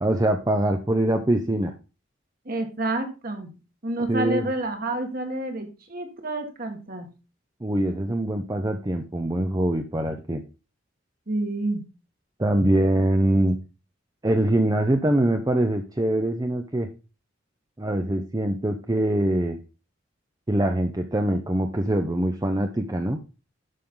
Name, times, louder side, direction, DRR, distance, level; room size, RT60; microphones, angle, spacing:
voice 1, 0.0-1.7 4.1-4.4 7.6-10.4 12.4-13.6 14.2-16.9 17.8-19.6 20.5-23.2, right 1 dB, 20° right, 5 dB, 0.6 m, -23 dB
voice 2, 2.5-3.6 3.8-7.1 11.3-11.8, right 2 dB, 50° right, 5 dB, 1.8 m, -29 dB
11.5 x 5.6 x 3.8 m, 0.31 s
head